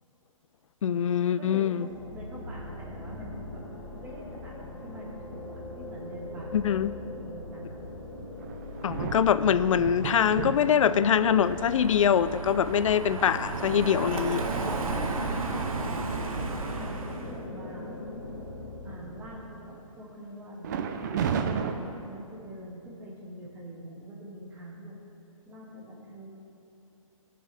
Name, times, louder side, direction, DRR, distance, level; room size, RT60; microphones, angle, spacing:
voice 1, 0.8-1.9 6.5-6.9 8.8-14.5, left 8 dB, 65° left, 15 dB, 0.4 m, -24 dB
voice 2, 1.4-3.6 3.9-7.8 14.7-17.9 18.8-20.8 21.8-25.0 25.4-26.3, equal, 10° right, -4 dB, 1.6 m, -45 dB
sound 1, 1.9-19.3, left 2 dB, 10° left, 2.5 m, -41 dB
sound 2, 8.4-11.4 12.1-12.2 12.7-16.3 16.8-16.9 17.3-17.7 18.0-18.8 20.6-21.7, right 7 dB, 35° right, 0.5 m, -35 dB
Car passing by, 8.9-17.4, right 3 dB, 85° right, 1.1 m, -34 dB
17.5 x 6.6 x 3.4 m, 2.8 s
hypercardioid pair, 155°, 17 cm